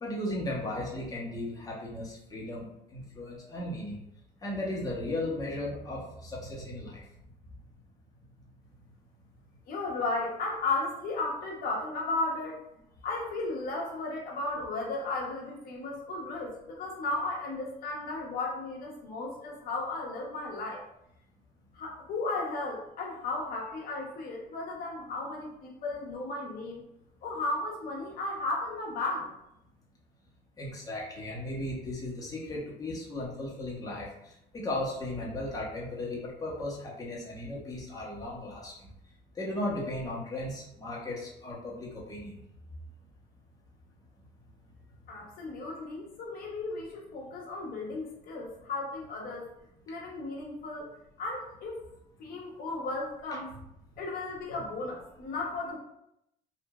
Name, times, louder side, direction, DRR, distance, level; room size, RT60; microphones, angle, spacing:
voice 1, 0.0-4.0 4.4-7.0 30.6-34.1 34.5-38.9 39.4-42.3, left 1 dB, 20° left, -4 dB, 1.0 m, -36 dB
voice 2, 9.7-12.6 13.0-20.8 21.7-26.8 27.2-29.3 45.1-49.5 49.9-50.9 51.2-51.8 52.2-53.5 54.0-55.8, left 2 dB, 60° left, -2 dB, 0.9 m, -35 dB
3.0 x 2.4 x 2.3 m, 0.79 s
cardioid pair, 110°, 17 cm